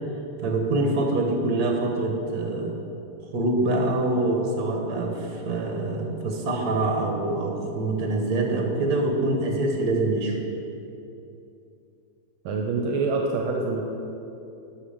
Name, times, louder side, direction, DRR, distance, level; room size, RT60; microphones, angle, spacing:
voice 1, 0.4-2.7 3.3-10.4, right 2 dB, 50° right, 2 dB, 1.7 m, -25 dB
voice 2, 12.4-13.8, right 3 dB, 75° right, 2 dB, 1.5 m, -25 dB
11.0 x 6.5 x 5.1 m, 2.8 s
omnidirectional pair, 2.4 m